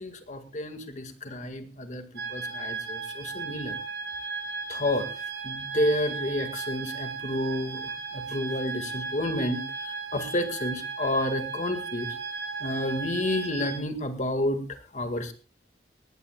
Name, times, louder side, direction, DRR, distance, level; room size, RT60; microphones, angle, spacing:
voice 1, 0.0-2.0 2.3-3.8 4.7-5.1 5.4-7.8 8.1-9.6 9.9-12.1 12.6-15.3, left 1 dB, 45° left, 7 dB, 2.1 m, -30 dB
sound 1, 2.2-13.8, right 4 dB, 75° right, 2.1 m, -36 dB
19.0 x 18.5 x 2.4 m, 0.32 s
head